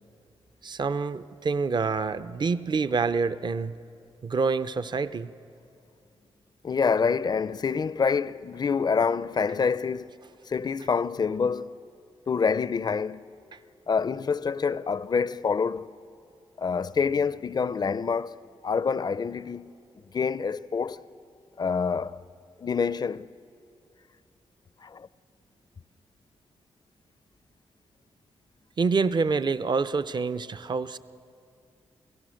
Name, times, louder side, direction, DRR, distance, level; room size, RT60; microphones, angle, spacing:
voice 1, 0.6-3.7 4.2-5.3 13.5-13.6 28.8-31.0, right 4 dB, 45° right, 0.6 m, -27 dB
voice 2, 6.6-10.1 10.5-11.8 12.3-13.2 13.9-15.9 16.6-19.7 20.1-21.0 21.6-22.2 22.6-23.3 24.8-25.1, left 5 dB, 40° left, 0.5 m, -27 dB
29.0 x 17.0 x 6.4 m
cardioid pair, 70°, 11 cm